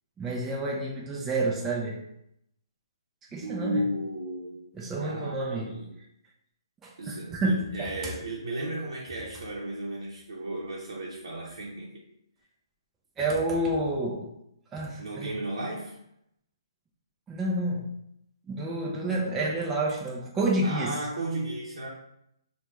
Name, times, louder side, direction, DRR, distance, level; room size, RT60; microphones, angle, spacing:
voice 1, 0.2-2.0 3.3-3.8 4.8-5.7 6.8-8.1 13.2-14.3 14.7-15.4 17.3-17.9 18.5-20.9, right 2 dB, 10° right, -3 dB, 0.3 m, -29 dB
voice 2, 3.4-4.6 5.0-6.0 7.0-12.0 15.0-16.0 20.6-21.9, right 1 dB, 85° right, -4 dB, 0.6 m, -34 dB
3.3 x 2.1 x 3.0 m, 0.77 s
hypercardioid pair, 155°, 3 cm